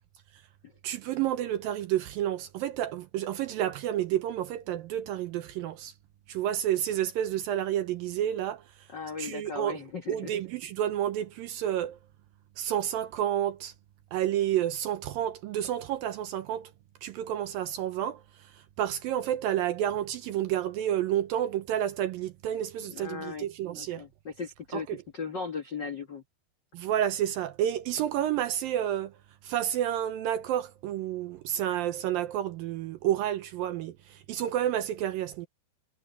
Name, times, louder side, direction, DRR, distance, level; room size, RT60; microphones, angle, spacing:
voice 1, 0.8-5.9 6.3-8.9 9.2-9.8 10.1-12.0 12.6-13.7 14.1-16.7 17.0-24.1 24.7-25.0 26.7-35.5, right 11 dB, 75° right, 2.2 m, -30 dB
voice 2, 8.9-10.3 22.9-23.5 23.8-24.9 25.1-26.2, left 5 dB, 65° left, 1.1 m, -37 dB
omnidirectional pair, 4.8 m